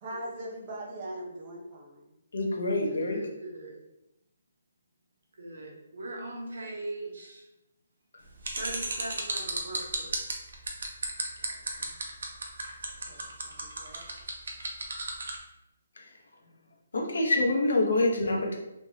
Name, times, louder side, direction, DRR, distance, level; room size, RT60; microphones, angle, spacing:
voice 1, 0.0-2.1 12.9-14.0, right 1 dB, 20° right, -3 dB, 0.6 m, -41 dB
voice 2, 2.3-3.2 16.9-18.5, left 2 dB, 65° left, 0 dB, 0.9 m, -26 dB
voice 3, 2.9-3.7 5.3-7.5 8.5-10.4, right 1 dB, 75° right, -1 dB, 1.1 m, -40 dB
sound 1, 8.4-15.4, right 3 dB, 60° right, 0.7 m, -33 dB
3.4 x 2.9 x 2.8 m, 0.91 s
hypercardioid pair, 180°, 0 cm